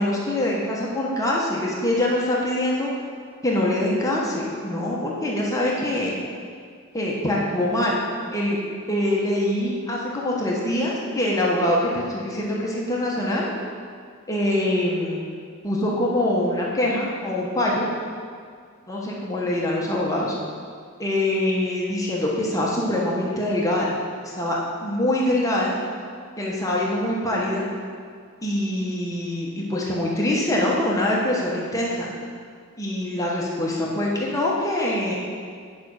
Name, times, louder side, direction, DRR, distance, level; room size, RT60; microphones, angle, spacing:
voice 1, 0.0-2.9 3.4-6.1 6.9-7.9 8.3-8.6 8.9-13.5 14.3-15.2 15.6-17.9 18.9-20.3 21.0-24.0 24.4-25.7 26.4-27.7 28.4-32.1 32.8-35.2, left 1 dB, 15° left, -4 dB, 1.1 m, -24 dB
9.3 x 5.1 x 6.4 m, 2.1 s
head